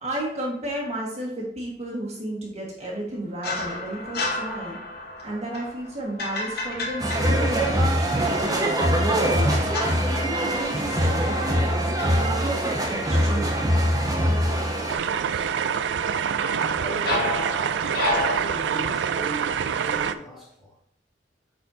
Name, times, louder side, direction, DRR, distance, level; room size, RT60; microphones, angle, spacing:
voice 1, 0.0-4.8 5.2-8.7 9.3-13.9, right 1 dB, 40° right, -4 dB, 1.5 m, -33 dB
sound 1, 3.4-8.3 9.2-11.7 12.0-12.3 16.4-18.4, left 2 dB, 60° left, 0.9 m, -31 dB
sound 2, 7.0-14.9, equal, 20° right, 0.9 m, -23 dB
voice 2, 14.8-15.6 16.5-17.4 17.9-18.1 18.3-20.8, equal, ahead, -5 dB, 2.3 m, -39 dB
sound 3, 14.9-20.1, right 7 dB, 85° right, 0.4 m, -26 dB
8.4 x 4.3 x 2.8 m, 0.70 s
head